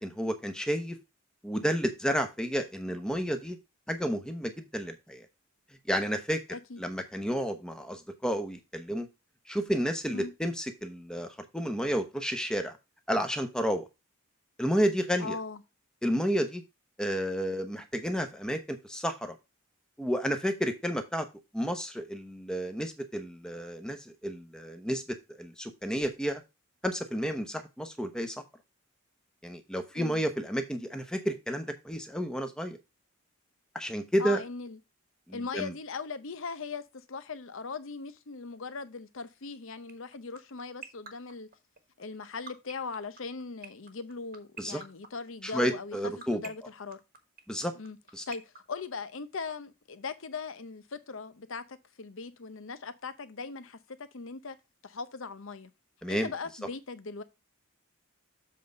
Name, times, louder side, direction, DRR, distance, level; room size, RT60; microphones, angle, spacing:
voice 1, 0.0-1.0 1.4-3.6 3.9-5.3 5.9-6.4 6.8-9.1 9.5-12.8 13.1-13.9 14.6-15.4 16.0-16.6 17.0-19.3 20.0-21.3 21.5-25.0 25.4-26.4 26.8-28.4 29.4-32.8 33.7-34.4 35.3-35.7 44.6-44.8 45.4-46.4 47.5-47.7 48.1-48.2 56.0-56.3, equal, 5° left, 0.9 m, -31 dB
voice 2, 6.5-6.8 10.1-10.3 15.2-15.6 29.9-30.3 34.2-34.8 35.3-41.5 42.0-46.0 46.3-47.0 47.7-48.0 48.3-54.6 54.8-55.7 56.1-57.2, left 4 dB, 65° left, 0.7 m, -39 dB
sound 1, 39.9-49.5, right 6 dB, 40° right, 1.2 m, -44 dB
7.5 x 3.9 x 5.3 m
head